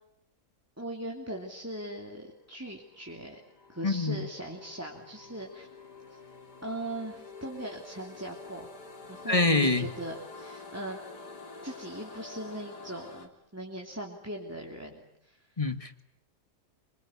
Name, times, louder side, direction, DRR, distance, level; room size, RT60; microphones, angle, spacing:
voice 1, 0.8-3.4 3.7-5.7 6.1-6.2 6.6-8.7 9.1-11.0 11.6-15.5, right 1 dB, 10° right, 1 dB, 3.0 m, -40 dB
sound 1, 2.6-13.3, left 3 dB, 75° left, 3.6 m, -48 dB
voice 2, 3.8-4.3 9.3-9.9 15.6-16.0, left 3 dB, 20° left, 8 dB, 1.9 m, -26 dB
27.5 x 25.5 x 8.6 m, 0.77 s
omnidirectional pair, 1.8 m